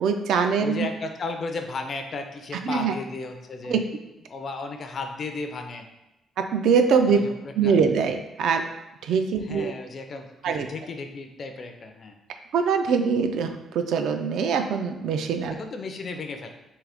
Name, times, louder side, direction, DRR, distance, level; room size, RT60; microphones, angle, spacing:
voice 1, 0.0-0.9 2.6-2.9 3.7-3.8 6.4-7.2 7.6-8.7 9.0-9.7 10.4-10.7 12.5-15.6, right 6 dB, 65° right, 6 dB, 0.3 m, -23 dB
voice 2, 0.6-3.8 4.3-5.9 7.1-7.8 9.4-12.2 15.6-16.5, left 3 dB, 35° left, 5 dB, 0.4 m, -34 dB
3.7 x 2.8 x 3.4 m, 0.93 s
cardioid pair, 175°, 0 cm